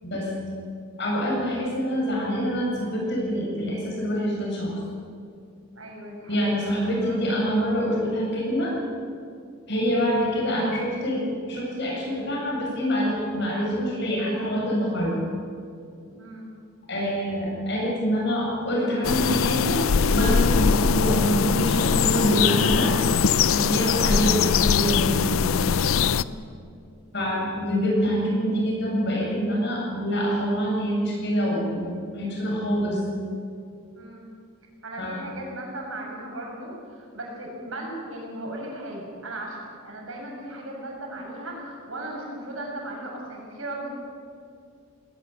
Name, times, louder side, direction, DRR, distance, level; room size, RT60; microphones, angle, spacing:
voice 1, 0.0-0.4 1.0-4.8 6.3-8.7 9.7-15.2 16.9-19.8 20.1-22.9 23.5-25.2 27.1-33.0 35.0-35.2, equal, 55° left, -2 dB, 8.0 m, -25 dB
voice 2, 5.7-7.2 9.8-10.1 16.1-16.5 24.3-24.6 26.1-26.4 33.9-34.3 34.8-43.9, right 1 dB, 75° right, -1 dB, 7.3 m, -37 dB
sound 1, 19.0-26.2, left 6 dB, 80° left, 0.5 m, -21 dB
20.0 x 19.5 x 8.5 m, 2.4 s
head